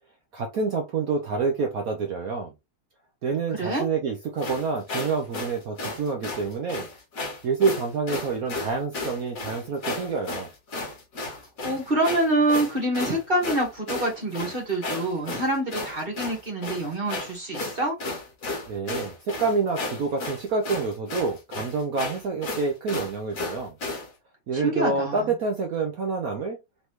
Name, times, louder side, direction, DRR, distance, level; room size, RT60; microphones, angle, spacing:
voice 1, 0.3-2.5 3.2-6.9 7.4-10.5 18.7-23.8 24.5-26.6, right 4 dB, 85° right, 0.7 m, -27 dB
voice 2, 3.5-3.8 11.6-17.9 24.5-25.3, right 1 dB, 30° right, 1.5 m, -26 dB
sound 1, 4.4-24.1, left 2 dB, 45° left, 1.5 m, -34 dB
4.1 x 3.4 x 3.0 m
omnidirectional pair, 2.4 m